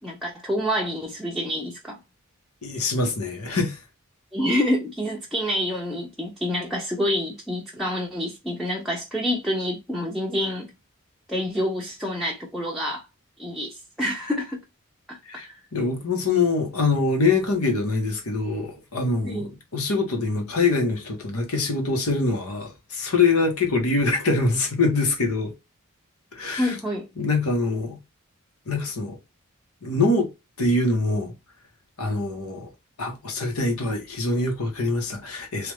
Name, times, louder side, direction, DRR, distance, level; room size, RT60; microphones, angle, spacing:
voice 1, 0.0-2.0 4.3-10.7 11.3-13.1 13.4-14.6 15.1-15.6 19.2-19.5 26.6-27.1, equal, ahead, 0.5 m, -27 dB
voice 2, 2.6-3.8 15.2-25.5 26.3-26.8 27.2-28.0 28.7-29.2 29.8-30.3 30.6-31.3 32.0-32.7 33.0-35.7, left 3 dB, 90° left, 1.2 m, -24 dB
3.3 x 2.5 x 3.2 m
head